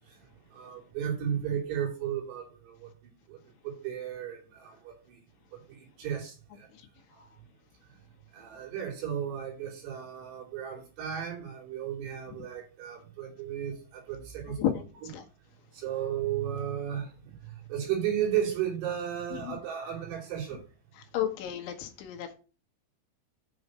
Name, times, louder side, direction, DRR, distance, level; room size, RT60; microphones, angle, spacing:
voice 1, 0.5-2.9 3.3-3.4 3.6-5.2 5.5-6.7 7.1-7.3 8.3-15.1 15.7-17.3 17.7-20.6, right 9 dB, 60° right, 4.7 m, -34 dB
voice 2, 21.1-22.4, left 10 dB, 75° left, 3.4 m, -31 dB
7.7 x 6.4 x 6.2 m
omnidirectional pair, 5.7 m